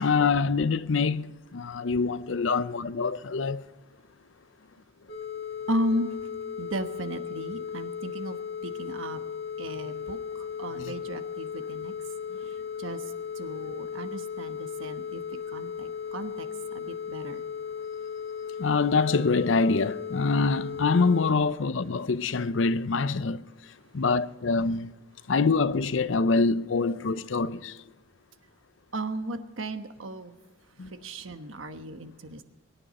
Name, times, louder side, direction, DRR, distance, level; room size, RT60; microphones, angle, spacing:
voice 1, 0.0-3.6 10.8-10.9 18.6-23.4 23.9-24.9 25.3-27.8 30.8-30.9, left 4 dB, 75° left, 0.6 m, -25 dB
sound 1, 5.1-21.3, left 7 dB, 55° left, 1.6 m, -36 dB
voice 2, 5.7-6.1 6.6-8.4 8.6-9.2 9.6-11.9 12.8-13.0 13.4-15.2 15.5-16.5 16.7-17.4 28.9-30.3 31.0-32.4, right 1 dB, 90° right, 1.2 m, -35 dB
23.5 x 10.0 x 4.2 m
head